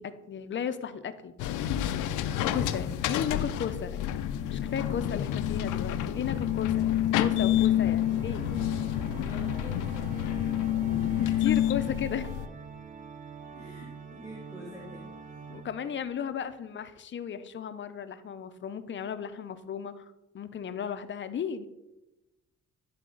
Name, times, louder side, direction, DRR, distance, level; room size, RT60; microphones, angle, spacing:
voice 1, 0.0-1.6 2.5-4.2 4.5-8.4 11.3-12.3 15.5-20.0 20.3-21.7, left 7 dB, 40° left, 11 dB, 0.5 m, -35 dB
sound 1, 1.4-12.5, left 11 dB, 85° left, 0.5 m, -28 dB
voice 2, 2.2-2.6 9.2-10.3 10.8-11.4 13.5-15.4, equal, 10° right, -3 dB, 1.8 m, -48 dB
Organ, 4.2-16.0, right 5 dB, 25° right, 0.7 m, -45 dB
10.0 x 4.1 x 3.8 m, 1.0 s
cardioid pair, 90°, 30 cm